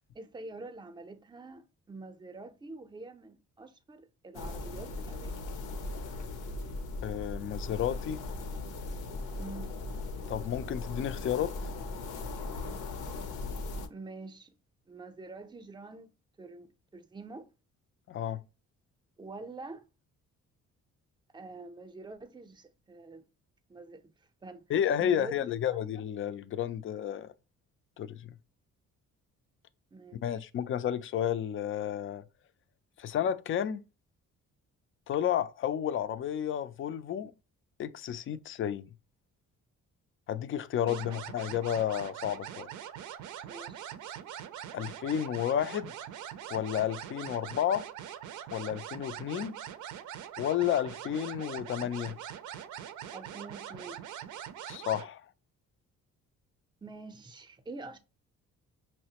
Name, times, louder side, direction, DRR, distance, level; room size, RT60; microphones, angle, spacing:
voice 1, 0.1-5.3 9.4-9.8 13.9-14.5 14.9-16.1 16.4-17.5 19.2-19.8 21.3-23.2 23.7-24.1 24.4-24.6 25.0-25.8 29.9-30.2 40.9-41.2 43.5-43.9 53.1-54.0 56.8-58.0, right 3 dB, 15° right, 0.6 m, -46 dB
sound 1, 4.3-13.9, left 2 dB, 80° left, 0.7 m, -38 dB
voice 2, 7.0-8.2 10.3-11.6 18.1-18.5 24.7-27.3 28.0-28.3 30.2-32.2 33.0-33.8 35.1-37.3 37.8-38.9 40.3-42.7 44.7-45.9 46.5-47.9 48.5-49.6 50.4-52.2 54.7-55.3, left 10 dB, 45° left, 0.4 m, -31 dB
sound 2, 40.9-55.1, right 10 dB, 80° right, 0.5 m, -43 dB
5.5 x 2.1 x 2.8 m
cardioid pair, 90°, 30 cm